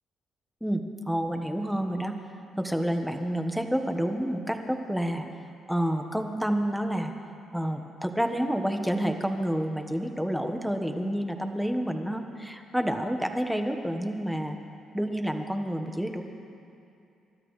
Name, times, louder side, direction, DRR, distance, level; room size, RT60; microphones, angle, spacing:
voice 1, 0.6-2.1 2.6-5.3 5.7-7.1 7.5-14.6 14.9-16.2, equal, ahead, 5 dB, 1.3 m, -29 dB
30.0 x 13.0 x 3.2 m, 2.6 s
cardioid pair, 90°, 0 cm